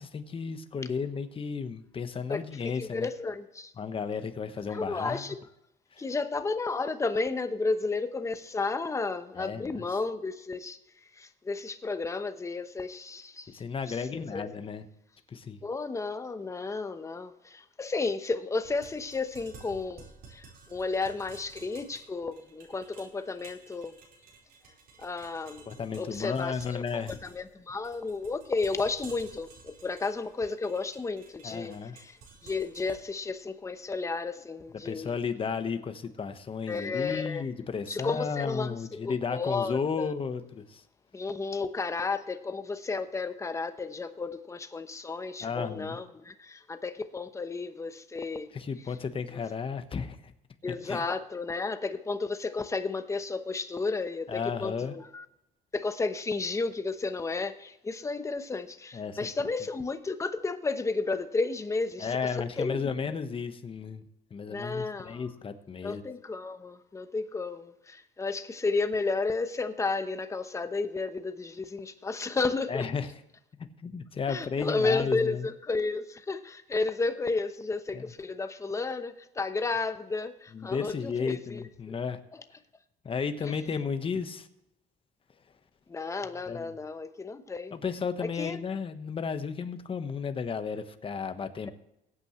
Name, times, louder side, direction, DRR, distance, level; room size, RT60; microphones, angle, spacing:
voice 1, 0.0-3.1 3.8-5.2 5.9-6.0 9.4-9.8 13.5-14.9 15.3-15.6 25.7-27.2 31.4-32.0 34.8-40.8 45.4-46.0 48.5-50.2 50.8-51.0 54.3-55.0 58.9-59.2 62.0-64.0 64.3-66.0 72.7-73.1 73.8-75.5 77.9-78.0 80.5-82.2 83.0-84.5 86.5-86.7 87.7-91.7, left 5 dB, 30° left, 1.2 m, -33 dB
voice 2, 2.3-3.7 4.7-5.4 6.0-10.8 11.2-13.6 13.9-14.5 15.6-23.9 25.0-25.6 26.0-32.2 32.4-35.1 36.7-37.4 37.9-40.1 41.1-48.5 50.6-55.2 55.7-63.1 64.5-65.3 65.8-72.9 74.3-82.0 82.3-82.4 83.4-83.5 85.9-87.7 88.2-88.6, left 3 dB, 15° left, 0.9 m, -32 dB
sound 1, 18.6-34.6, right 4 dB, 70° right, 4.3 m, -54 dB
21.0 x 8.7 x 3.1 m
cardioid pair, 110°, 17 cm